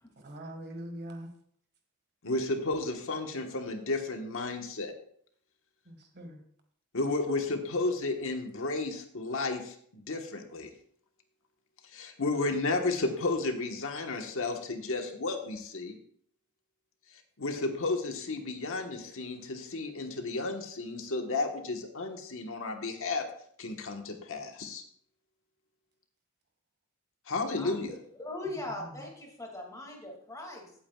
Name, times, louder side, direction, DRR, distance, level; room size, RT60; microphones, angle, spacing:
voice 1, 0.2-1.3 5.9-6.4 28.4-29.0, equal, 50° right, 4 dB, 1.8 m, -43 dB
voice 2, 2.2-4.9 6.9-10.7 11.9-15.9 17.4-23.3 23.6-24.8 27.3-28.0, left 3 dB, 65° left, 4 dB, 1.3 m, -32 dB
voice 3, 27.6-30.7, left 2 dB, 15° left, 0 dB, 2.3 m, -40 dB
16.0 x 8.6 x 2.4 m, 0.62 s
head